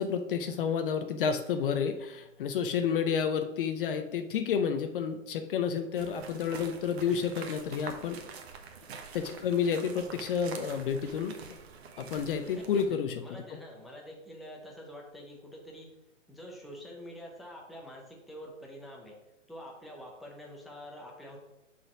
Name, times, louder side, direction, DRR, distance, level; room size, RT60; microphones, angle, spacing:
voice 1, 0.0-8.2 9.1-11.6 12.0-13.1, left 7 dB, 45° left, 8 dB, 0.6 m, -30 dB
sound 1, 5.9-12.9, right 5 dB, 55° right, 1.2 m, -46 dB
voice 2, 7.0-7.7 8.1-8.3 12.4-15.9 16.3-19.2 19.5-21.4, equal, ahead, -2 dB, 0.7 m, -47 dB
5.6 x 4.1 x 5.9 m, 0.94 s
hypercardioid pair, 135°, 39 cm